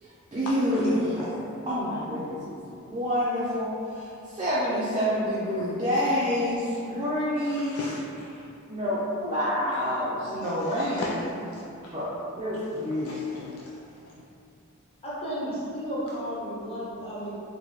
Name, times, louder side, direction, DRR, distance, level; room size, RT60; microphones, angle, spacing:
voice 1, 0.0-7.7 8.7-11.2 11.9-13.4, equal, 20° right, -10 dB, 0.5 m, -28 dB
voice 2, 5.6-5.9 7.5-8.4 10.4-11.2 11.5-11.6 13.0-14.1, left 3 dB, 70° left, -4 dB, 0.3 m, -39 dB
voice 3, 15.0-17.3, equal, 25° left, -9 dB, 1.0 m, -33 dB
4.0 x 2.1 x 3.1 m, 2.7 s
head